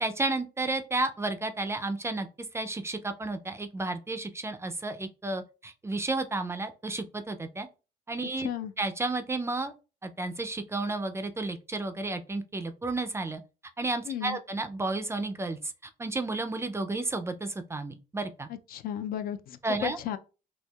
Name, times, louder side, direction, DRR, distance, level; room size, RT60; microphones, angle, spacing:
voice 1, 0.0-2.3 2.5-7.7 8.1-8.5 8.8-9.7 10.0-13.4 13.8-15.6 16.0-18.5 19.6-20.0, right 2 dB, 15° right, 0.3 m, -32 dB
voice 2, 8.4-8.7 14.1-14.4 18.7-20.2, left 10 dB, 60° left, 0.4 m, -34 dB
4.3 x 2.6 x 2.3 m
cardioid pair, 110°, 17 cm